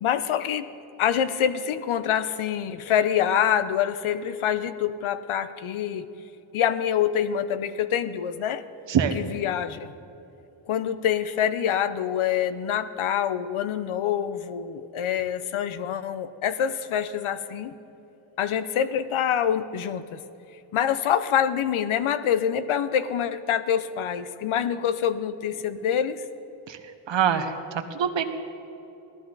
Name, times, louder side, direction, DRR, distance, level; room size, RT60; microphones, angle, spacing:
voice 1, 0.0-0.7 1.0-6.1 6.5-8.6 9.1-9.9 10.7-17.7 18.4-20.2 20.7-26.2, left 9 dB, 75° left, 13 dB, 0.8 m, -26 dB
voice 2, 27.1-28.2, right 8 dB, 60° right, 8 dB, 1.1 m, -24 dB
17.5 x 13.5 x 4.0 m, 2.9 s
cardioid pair, 90°, 49 cm